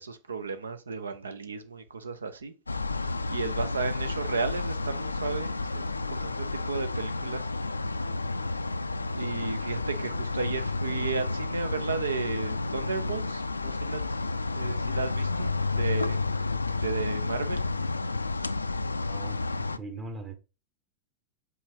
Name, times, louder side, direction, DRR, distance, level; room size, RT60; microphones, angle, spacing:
voice 1, 0.0-2.5 3.0-7.5 9.1-14.0 14.5-16.2 16.8-17.6, right 4 dB, 70° right, 0.8 m, -34 dB
sound 1, 2.7-19.8, left 3 dB, 80° left, 0.3 m, -31 dB
voice 2, 19.1-19.4 19.8-20.4, right 3 dB, 25° right, 1.2 m, -39 dB
5.5 x 3.9 x 4.6 m
figure-of-eight pair, 90°, 0 cm